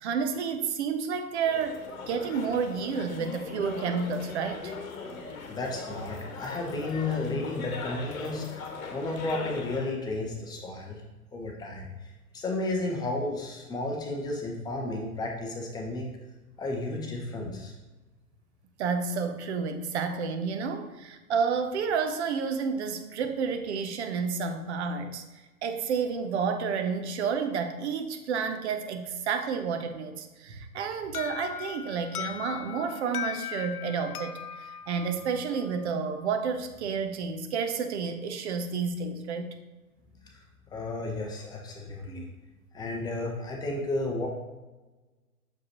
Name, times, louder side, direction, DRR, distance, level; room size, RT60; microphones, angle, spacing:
voice 1, 0.0-4.7 18.8-25.2 25.6-39.5 42.1-42.3, right 5 dB, 50° right, 8 dB, 0.8 m, -30 dB
sound 1, 1.4-9.9, left 4 dB, 65° left, 1.1 m, -40 dB
voice 2, 5.5-8.6 8.9-11.0 11.3-11.9 12.3-16.0 16.6-17.7 40.7-42.2 42.7-44.3, left 2 dB, 10° left, 0 dB, 0.6 m, -32 dB
Alarm, 31.1-35.9, left 10 dB, 85° left, 0.5 m, -38 dB
6.7 x 4.7 x 3.0 m, 1.1 s
figure-of-eight pair, 115°, 44 cm